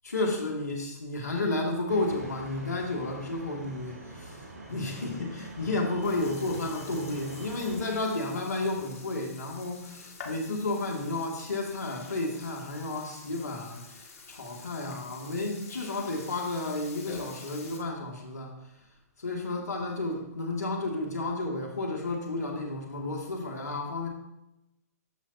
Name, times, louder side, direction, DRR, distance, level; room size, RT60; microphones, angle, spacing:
voice 1, 0.1-18.6 19.2-24.1, left 2 dB, 80° left, 1 dB, 2.0 m, -32 dB
sound 1, 1.9-8.0, right 2 dB, 85° right, 3.0 m, -45 dB
Burping eructation, 4.6-17.8, left 4 dB, 60° left, 1.8 m, -48 dB
13.0 x 5.3 x 2.7 m, 0.89 s
hypercardioid pair, 125°, 9 cm